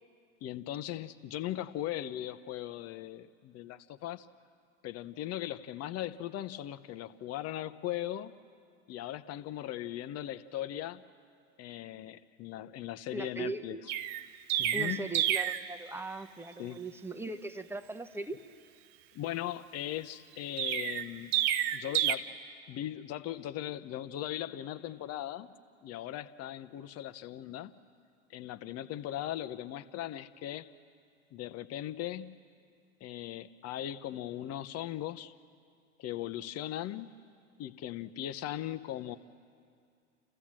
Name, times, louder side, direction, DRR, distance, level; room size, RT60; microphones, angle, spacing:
voice 1, 0.4-4.3 4.8-8.3 8.9-11.0 11.6-13.8 14.6-15.1 16.6-16.8 19.1-21.3 21.7-22.4 22.7-25.5 25.8-27.7 28.3-30.7 31.3-32.4 33.0-35.3 36.0-37.1 37.6-39.2, left 12 dB, 40° left, 12 dB, 1.0 m, -38 dB
voice 2, 13.1-13.8 14.7-18.4, right 3 dB, 5° right, 9 dB, 1.0 m, -39 dB
Chirp tweet, 13.9-15.7 20.6-22.1, right 11 dB, 55° right, 0.9 m, -29 dB
28.5 x 15.0 x 7.5 m, 2.3 s
hypercardioid pair, 85°, 37 cm